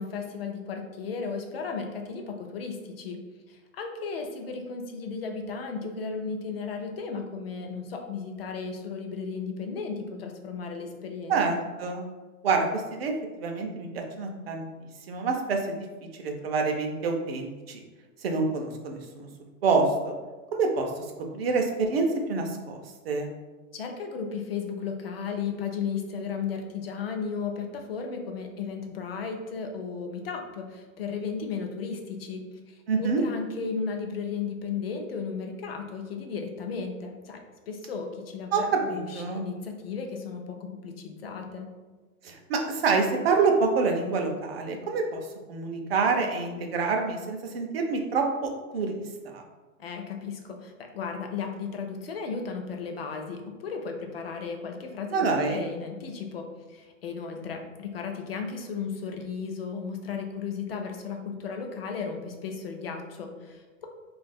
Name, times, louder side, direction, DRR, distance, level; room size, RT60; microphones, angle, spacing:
voice 1, 0.0-3.2 3.5-11.6 23.7-41.7 49.8-63.8, left 5 dB, 50° left, 3 dB, 0.4 m, -35 dB
voice 2, 11.3-12.1 12.4-13.1 13.4-14.7 15.1-15.8 16.2-17.8 18.2-19.3 19.6-20.1 20.5-20.9 21.3-22.8 23.1-23.3 32.9-33.2 38.5-38.6 38.9-39.4 42.2-45.2 45.5-49.0 49.2-49.4 55.1-55.7, right 4 dB, 45° right, 2 dB, 0.5 m, -27 dB
2.6 x 2.4 x 4.0 m, 1.2 s
supercardioid pair, 180°, 41 cm